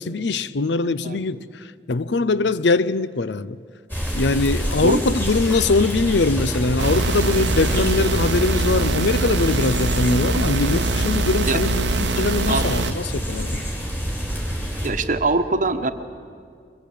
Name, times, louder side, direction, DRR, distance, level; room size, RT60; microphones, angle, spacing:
voice 1, 0.0-1.4 1.9-3.6 4.1-13.6, left 3 dB, 75° left, 0.6 m, -22 dB
sound 1, 3.9-14.9, equal, 10° left, 4.7 m, -26 dB
sound 2, 6.8-12.9, right 3 dB, 90° right, 0.8 m, -24 dB
voice 2, 14.8-15.9, right 3 dB, 45° right, 1.1 m, -22 dB
23.0 x 21.0 x 8.6 m
head